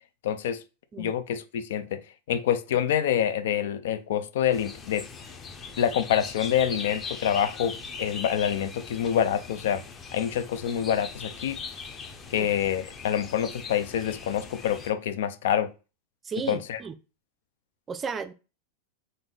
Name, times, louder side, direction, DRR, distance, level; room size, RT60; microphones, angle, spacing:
voice 1, 0.2-0.6 1.0-2.0 2.3-5.0 5.8-9.8 10.1-11.6 12.3-15.7 16.5-16.8, left 9 dB, 75° left, 0.5 m, -26 dB
sound 1, 4.5-14.9, left 5 dB, 20° left, 0.6 m, -40 dB
voice 2, 16.2-16.9 17.9-18.3, right 6 dB, 20° right, 0.4 m, -34 dB
3.8 x 2.6 x 3.8 m
supercardioid pair, 135°, 0 cm